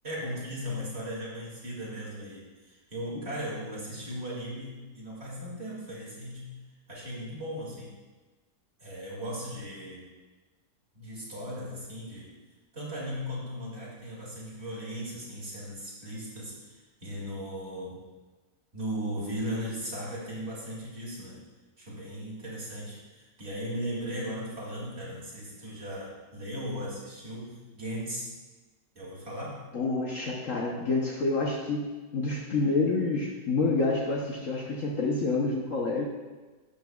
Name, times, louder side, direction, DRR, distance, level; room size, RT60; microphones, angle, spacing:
voice 1, 0.0-6.5 6.9-8.0 8.8-10.1 10.9-12.4 12.7-18.1 18.7-21.4 21.8-28.3 28.9-29.6, equal, 35° right, -5 dB, 2.6 m, -37 dB
voice 2, 29.7-36.1, left 3 dB, 55° left, -2 dB, 1.1 m, -28 dB
12.0 x 7.9 x 2.3 m, 1.3 s
omnidirectional pair, 1.8 m